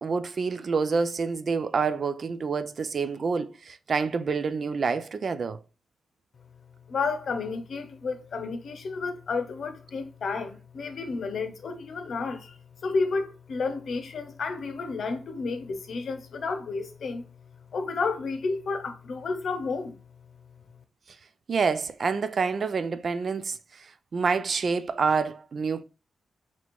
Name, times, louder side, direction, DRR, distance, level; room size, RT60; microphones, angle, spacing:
voice 1, 0.0-5.6 21.5-25.8, right 5 dB, 55° right, 0.4 m, -27 dB
voice 2, 6.9-12.6 12.8-17.3 17.7-20.0, left 4 dB, 70° left, 0.7 m, -31 dB
3.0 x 2.9 x 4.2 m
cardioid pair, 65°, 0 cm